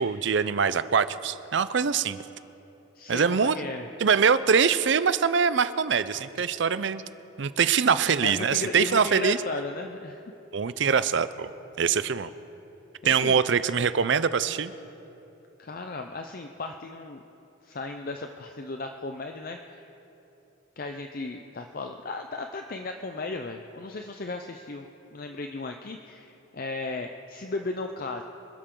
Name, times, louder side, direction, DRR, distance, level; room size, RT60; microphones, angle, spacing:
voice 1, 0.0-2.2 3.1-3.6 4.0-7.0 7.4-9.4 10.5-11.5 11.8-12.3 13.0-14.7, right 6 dB, 60° right, 14 dB, 0.5 m, -23 dB
voice 2, 2.9-3.9 6.1-6.2 8.2-10.2 13.0-13.4 15.6-17.2 17.6-19.9 20.8-28.2, left 3 dB, 45° left, 4 dB, 0.5 m, -35 dB
25.5 x 12.0 x 3.8 m, 2.9 s
head